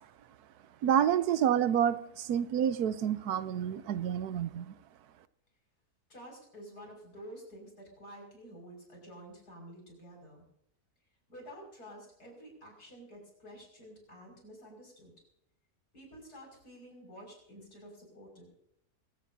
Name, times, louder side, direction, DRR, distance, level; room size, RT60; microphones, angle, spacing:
voice 1, 0.8-4.7, right 9 dB, 80° right, 14 dB, 1.2 m, -28 dB
voice 2, 6.1-10.4 11.3-15.1 15.9-18.5, equal, 80° left, 0 dB, 6.3 m, -50 dB
24.5 x 15.5 x 2.8 m, 0.74 s
omnidirectional pair, 1.6 m